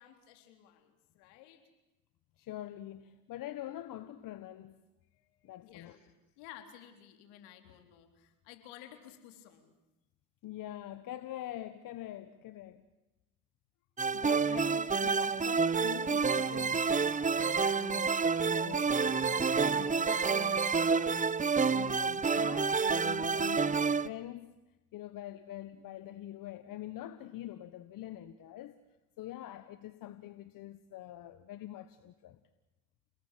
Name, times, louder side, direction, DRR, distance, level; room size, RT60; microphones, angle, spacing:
voice 1, 0.0-1.6 5.1-9.7 14.1-14.6, left 11 dB, 80° left, 3.8 m, -55 dB
voice 2, 2.4-4.8 5.4-6.0 10.4-12.8 14.1-21.3 21.6-24.5 24.9-28.8 29.2-32.4, left 13 dB, 60° left, 1.4 m, -45 dB
sound 1, 14.0-24.1, right 5 dB, 20° right, 0.9 m, -29 dB
sound 2, 14.1-21.3, right 1 dB, 20° left, 6.2 m, -56 dB
30.0 x 19.5 x 8.5 m
hypercardioid pair, 75°, 38 cm